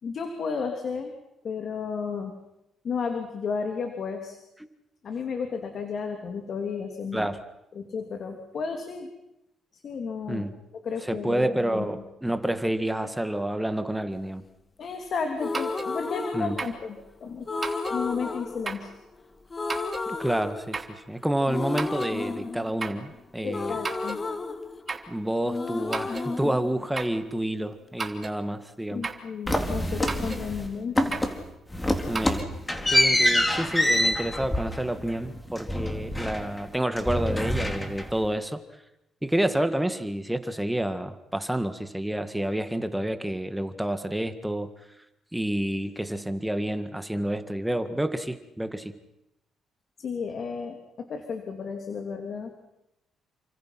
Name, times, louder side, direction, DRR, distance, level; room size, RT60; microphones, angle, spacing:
voice 1, 0.0-1.1 1.4-2.3 2.8-4.4 5.0-7.3 7.7-9.1 9.7-10.4 10.8-11.9 14.8-17.5 17.9-18.9 23.4-24.2 28.9-31.2 50.0-52.5, left 5 dB, 55° left, 5 dB, 3.1 m, -33 dB
voice 2, 11.0-14.4 16.3-16.6 20.1-23.8 25.1-29.1 32.1-32.5 32.9-38.6 39.2-44.7 45.3-48.9, right 1 dB, 5° right, 9 dB, 1.9 m, -29 dB
sound 1, 15.3-17.0 17.5-19.2 19.5-21.1 21.5-25.2 25.4-27.5, left 3 dB, 30° left, 2.0 m, -33 dB
sound 2, 15.5-15.9 16.6-16.8 17.6-18.0 18.7-18.9 19.7-20.1 20.7-21.0 21.8-22.2 22.8-23.0 23.8-24.2 24.9-25.2 25.9-26.3 27.0-27.2 28.0-28.4 29.0-29.3 30.1-30.5 31.1-31.4 32.2-32.5, right 4 dB, 30° right, 3.1 m, -34 dB
sound 3, 29.5-30.7 31.0-31.4 31.7-36.7 37.0-38.3, left 1 dB, 10° left, 3.9 m, -26 dB
30.0 x 26.5 x 6.0 m, 0.87 s
cardioid pair, 90°, 0 cm